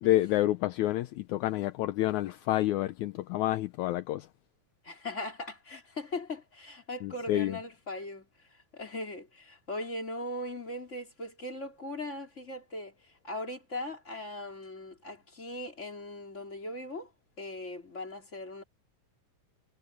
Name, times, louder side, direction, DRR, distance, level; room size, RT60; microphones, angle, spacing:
voice 1, 0.0-4.3 7.0-7.6, left 15 dB, 75° left, 1.9 m, -28 dB
voice 2, 4.8-17.1 17.4-18.6, left 1 dB, 20° left, 4.3 m, -39 dB
omnidirectional pair, 3.9 m